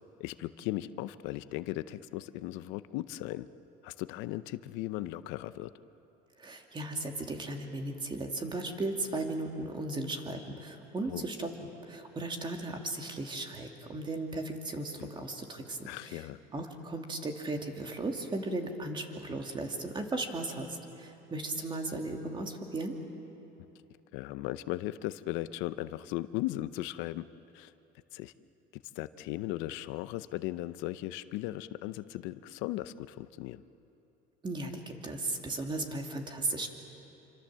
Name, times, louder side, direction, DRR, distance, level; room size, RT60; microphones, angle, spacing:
voice 1, 0.2-3.5 3.8-5.7 11.1-11.2 15.8-16.4 24.1-27.3 27.5-27.7 28.1-28.3 28.9-33.6, left 16 dB, 80° left, 14 dB, 0.7 m, -37 dB
voice 2, 6.4-11.5 11.9-16.2 16.5-23.0 34.4-36.7, right 2 dB, 25° right, 3 dB, 2.6 m, -36 dB
27.0 x 25.5 x 7.5 m, 2.9 s
cardioid pair, 125°, 19 cm